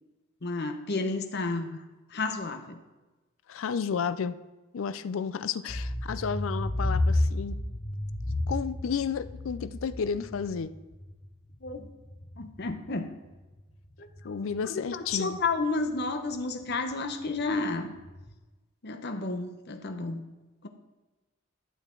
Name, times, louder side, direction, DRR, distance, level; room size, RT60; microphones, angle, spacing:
voice 1, 0.4-1.8 2.1-2.8 11.6-11.9 12.4-13.1 14.0-14.1 14.6-17.9 18.8-20.2 20.6-20.7, left 3 dB, 50° left, 7 dB, 0.8 m, -31 dB
voice 2, 3.5-4.4 4.7-7.6 8.5-10.7 14.2-15.4, left 6 dB, 70° left, 13 dB, 0.4 m, -32 dB
sound 1, 5.7-12.9 13.3-14.6 15.1-15.2 15.5-15.6 16.0-16.1 16.3-16.4 16.7-16.9 17.2-18.3, left 1 dB, 25° left, 0.8 m, -32 dB
12.0 x 6.6 x 3.8 m, 1.1 s
head